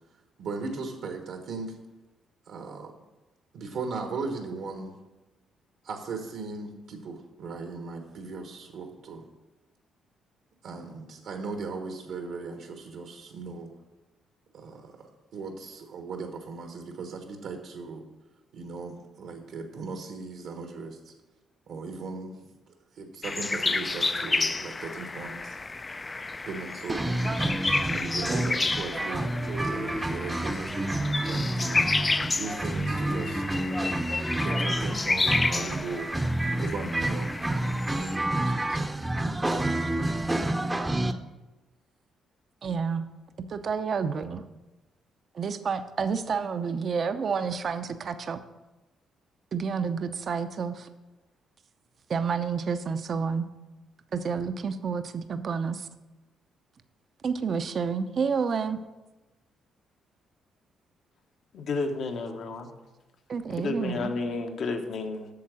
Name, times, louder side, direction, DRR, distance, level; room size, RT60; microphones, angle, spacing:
voice 1, 0.4-1.8 2.5-2.9 3.5-4.9 5.8-9.3 10.6-13.7 14.5-18.1 18.5-21.1 21.7-22.4 22.9-25.6 26.5-27.1 27.9-30.9 31.2-31.8 32.3-33.6 34.4-36.1 36.6-37.4 38.2-38.8, right 4 dB, 75° right, 4 dB, 1.2 m, -37 dB
sound 1, 23.2-38.2, left 3 dB, 25° left, 0.4 m, -31 dB
sound 2, 26.9-41.1, right 1 dB, 15° right, 0.7 m, -29 dB
voice 2, 42.6-43.1 43.4-44.4 45.3-48.4 49.5-50.9 52.1-53.5 54.1-55.9 57.2-58.8 63.3-64.1, right 5 dB, 50° right, 9 dB, 0.6 m, -29 dB
voice 3, 61.5-62.7 63.6-65.3, left 3 dB, 65° left, 6 dB, 1.1 m, -31 dB
8.5 x 6.5 x 6.2 m, 1.1 s
cardioid pair, 90°, 0 cm